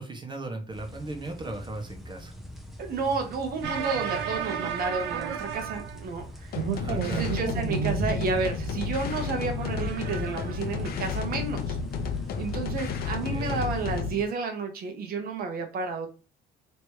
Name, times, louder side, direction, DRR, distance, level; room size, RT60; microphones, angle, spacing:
voice 1, 0.0-2.3 6.7-7.3 13.3-13.6, right 2 dB, 25° right, 3 dB, 1.2 m, -37 dB
sound 1, 0.7-14.0, left 1 dB, ahead, 0.8 m, -40 dB
voice 2, 2.8-6.6 6.9-11.8 12.4-16.1, right 4 dB, 60° right, 5 dB, 1.2 m, -31 dB
sound 2, 3.6-6.3 6.6-8.3 9.2-10.9, right 8 dB, 85° right, 0.8 m, -33 dB
sound 3, 6.5-14.2, left 6 dB, 65° left, 0.7 m, -32 dB
3.3 x 3.0 x 4.6 m, 0.34 s
cardioid pair, 110°, 17 cm